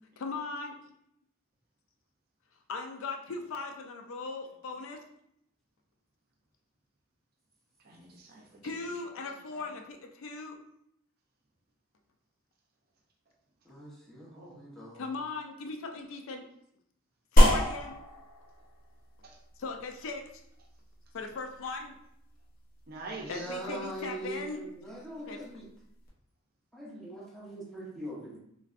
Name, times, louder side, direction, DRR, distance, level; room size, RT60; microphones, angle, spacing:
voice 1, 0.2-0.8 2.7-5.0 8.6-10.6 14.9-16.5 17.3-18.0 19.6-20.2 21.1-22.0 23.3-24.6 25.3-25.4, left 4 dB, 65° left, 3 dB, 0.4 m, -38 dB
voice 2, 7.8-9.8 14.3-14.6 19.2-19.4 20.6-20.7 21.1-21.2 22.9-23.6, right 3 dB, 45° right, 0 dB, 0.5 m, -47 dB
voice 3, 13.6-15.1 23.2-25.7 26.7-28.4, right 1 dB, ahead, -7 dB, 0.8 m, -42 dB
sound 1, 17.4-26.1, equal, 40° left, 0.8 m, -30 dB
3.2 x 2.5 x 2.4 m, 0.73 s
head